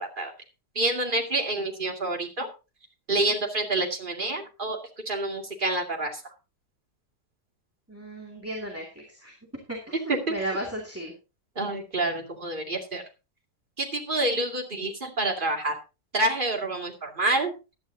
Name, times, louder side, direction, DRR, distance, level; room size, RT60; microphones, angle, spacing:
voice 1, 0.7-2.5 3.1-4.8 5.1-6.2 11.6-13.0 13.8-15.7 16.1-17.5, right 2 dB, 30° right, 2 dB, 2.5 m, -27 dB
voice 2, 7.9-9.3 9.7-11.1, right 1 dB, 10° right, -1 dB, 2.3 m, -35 dB
16.0 x 11.0 x 2.8 m, 0.29 s
omnidirectional pair, 1.8 m